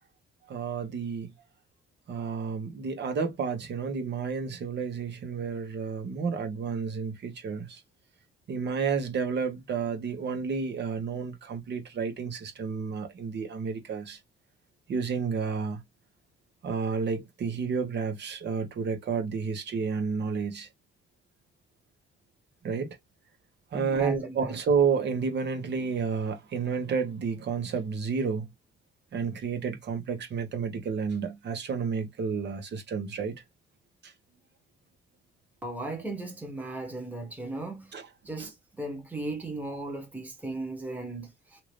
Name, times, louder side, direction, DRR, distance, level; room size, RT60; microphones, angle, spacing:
voice 1, 0.5-1.3 2.1-7.8 8.5-14.2 14.9-15.8 16.6-20.7 22.6-23.0 23.7-28.5 29.1-33.4 34.0-34.1 37.9-38.1 38.4-38.5, right 5 dB, 60° right, 1.2 m, -31 dB
voice 2, 23.7-24.5 35.6-38.0 38.2-41.6, right 2 dB, 10° right, 1.2 m, -37 dB
2.9 x 2.5 x 3.2 m
cardioid pair, 90°, 20 cm